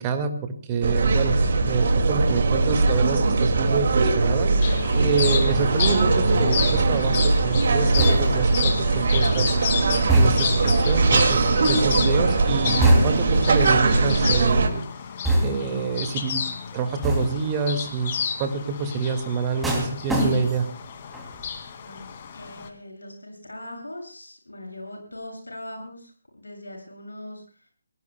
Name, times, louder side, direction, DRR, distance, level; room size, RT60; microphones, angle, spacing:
voice 1, 0.0-1.4 1.7-9.6 10.1-14.8 15.4-16.5 16.7-18.1 18.4-20.7, right 5 dB, 20° right, 6 dB, 1.9 m, -27 dB
sound 1, 0.8-14.7, right 3 dB, 45° right, 2.1 m, -21 dB
sound 2, 4.6-22.7, left 7 dB, 30° left, 2.2 m, -31 dB
sound 3, 8.0-8.5 10.1-10.7 12.8-13.4 15.2-15.8 17.0-17.5 19.6-20.8 21.1-21.5, right 1 dB, 5° right, 2.7 m, -22 dB
voice 2, 21.8-27.4, left 1 dB, 75° left, 2 dB, 7.5 m, -40 dB
29.5 x 19.0 x 2.2 m, 0.39 s
figure-of-eight pair, 145°, 0 cm